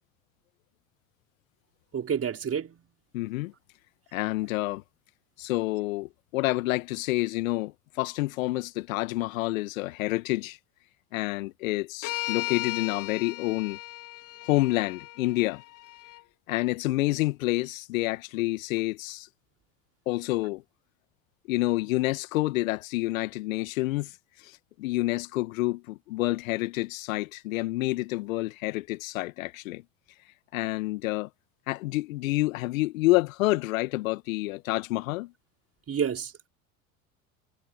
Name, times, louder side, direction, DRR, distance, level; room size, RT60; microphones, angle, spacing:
voice 1, 1.9-2.9 35.9-36.5, right 7 dB, 35° right, 5.6 m, -30 dB
voice 2, 3.1-3.5 4.1-4.8 5.4-10.6 11.1-13.8 14.5-15.6 16.5-19.3 20.1-20.6 21.5-24.1 24.4-24.5 24.8-29.8 30.5-31.3 31.7-35.3, left 19 dB, 70° left, 1.8 m, -28 dB
sound 1, 12.0-16.2, left 19 dB, 50° left, 3.7 m, -36 dB
hypercardioid pair, 70°, 42 cm